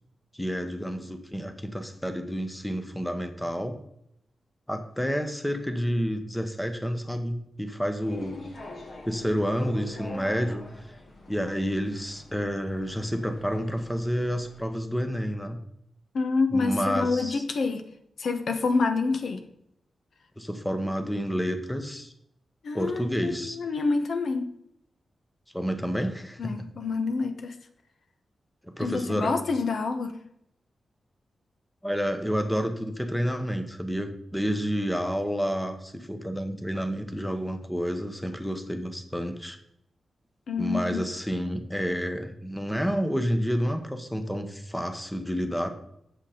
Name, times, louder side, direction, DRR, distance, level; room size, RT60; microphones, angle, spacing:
voice 1, 0.3-3.8 4.7-8.4 9.0-10.6 11.3-15.6 16.5-17.4 20.4-22.1 22.7-23.6 25.5-26.7 28.6-29.3 31.8-39.6 40.6-45.7, equal, 5° left, 7 dB, 0.9 m, -29 dB
sound 1, 8.0-14.6, left 2 dB, 50° left, 1.7 m, -44 dB
voice 2, 16.1-17.8 18.2-19.4 22.6-24.5 26.4-27.5 28.8-30.2 40.5-41.0, left 4 dB, 65° left, 7 dB, 1.0 m, -27 dB
8.3 x 7.4 x 5.0 m, 0.75 s
wide cardioid pair, 130°, 0 cm